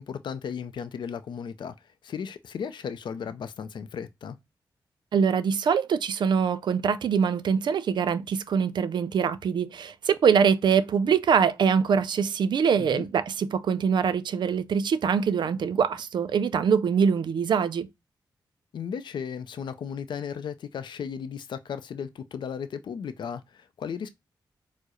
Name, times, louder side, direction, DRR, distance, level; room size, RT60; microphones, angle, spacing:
voice 1, 0.0-4.4 12.8-13.1 18.7-24.1, left 7 dB, 75° left, 0.4 m, -35 dB
voice 2, 5.1-17.9, right 6 dB, 70° right, 0.4 m, -24 dB
4.5 x 2.0 x 2.9 m
wide cardioid pair, 90°, 8 cm